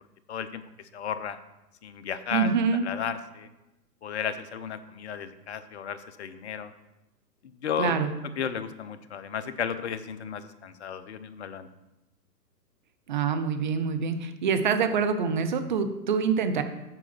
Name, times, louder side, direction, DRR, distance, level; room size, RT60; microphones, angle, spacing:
voice 1, 0.3-0.6 0.9-1.4 1.8-2.5 2.8-3.5 4.0-6.7 7.6-8.0 8.4-11.7, left 8 dB, 45° left, 12 dB, 0.6 m, -33 dB
voice 2, 2.3-2.8 7.8-8.2 13.1-16.6, right 6 dB, 30° right, 8 dB, 0.5 m, -25 dB
7.7 x 4.8 x 5.9 m, 0.97 s
figure-of-eight pair, 125°, 50 cm